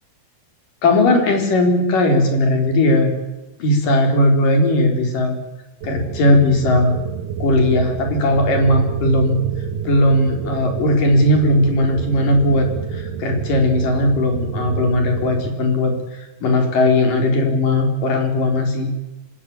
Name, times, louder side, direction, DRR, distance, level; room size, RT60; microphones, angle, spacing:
voice 1, 0.8-3.1 3.6-5.4 5.8-7.0 7.4-9.3 9.9-18.9, left 1 dB, 85° left, 4 dB, 5.7 m, -17 dB
sound 1, 5.8-15.5, right 6 dB, 90° right, 3.2 m, -29 dB
25.5 x 16.5 x 8.9 m, 1.0 s
omnidirectional pair, 3.7 m